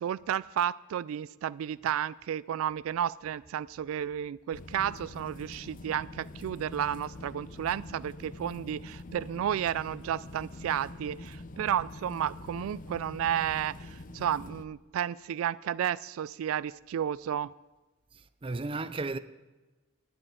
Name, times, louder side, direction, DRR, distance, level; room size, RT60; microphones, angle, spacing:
voice 1, 0.0-17.5, right 10 dB, 85° right, 0.3 m, -32 dB
sound 1, 4.5-14.7, left 2 dB, 40° left, 0.6 m, -45 dB
voice 2, 18.1-19.2, right 3 dB, 25° right, 0.5 m, -34 dB
10.5 x 7.5 x 9.3 m
head